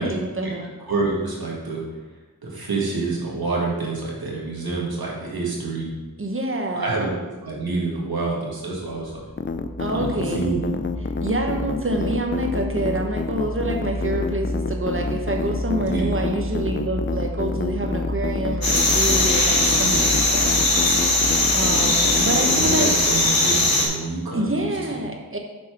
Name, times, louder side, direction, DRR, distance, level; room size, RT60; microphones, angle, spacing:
voice 1, 0.0-0.7 6.2-7.1 9.8-10.6 11.2-20.7 21.5-22.9 24.3-25.4, right 1 dB, 35° right, 2 dB, 1.2 m, -27 dB
voice 2, 0.9-1.8 2.4-5.9 6.8-7.1 7.4-9.2 9.8-10.6 15.8-16.2 19.6-20.0 22.1-25.0, right 3 dB, 70° right, -4 dB, 1.9 m, -28 dB
sound 1, 9.0-23.4, left 1 dB, 5° right, 1.3 m, -31 dB
sound 2, 9.4-22.8, left 5 dB, 30° left, 0.5 m, -28 dB
sound 3, 18.6-23.9, left 2 dB, 65° left, 1.9 m, -19 dB
7.4 x 4.2 x 4.8 m, 1.2 s
wide cardioid pair, 45°, 37 cm